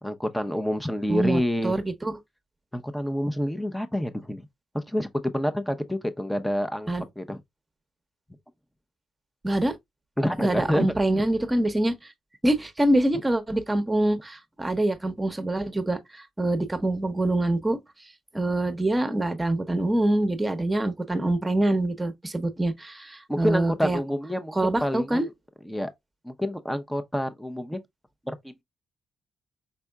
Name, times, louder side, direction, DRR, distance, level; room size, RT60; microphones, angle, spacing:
voice 1, 0.0-1.7 2.7-4.5 4.7-6.9 7.2-7.4 10.2-10.9 23.3-25.3 25.6-25.9 26.2-27.8 28.3-28.6, equal, 5° left, 0.8 m, -28 dB
voice 2, 1.1-2.1 6.9-7.0 9.4-9.8 10.4-11.9 12.4-17.8 18.3-24.0 24.5-25.3, right 1 dB, 20° right, 1.1 m, -25 dB
5.5 x 3.4 x 2.3 m
supercardioid pair, 60°, 0 cm